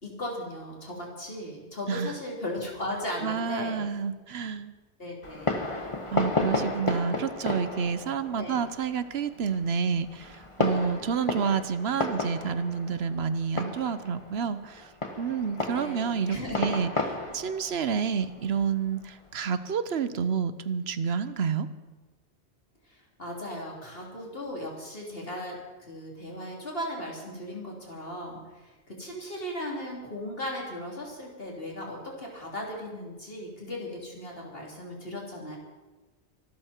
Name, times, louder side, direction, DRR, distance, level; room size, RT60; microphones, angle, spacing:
voice 1, 0.0-3.9 5.0-5.6 8.4-8.6 15.7-16.7 22.9-35.6, left 1 dB, 60° left, -2 dB, 3.8 m, -37 dB
voice 2, 3.2-4.7 6.1-14.9 15.2-21.7, right 6 dB, 75° right, 13 dB, 1.1 m, -29 dB
Fireworks, 5.2-19.4, left 2 dB, 30° left, 1.5 m, -33 dB
24.0 x 13.0 x 4.5 m, 1.2 s
omnidirectional pair, 1.1 m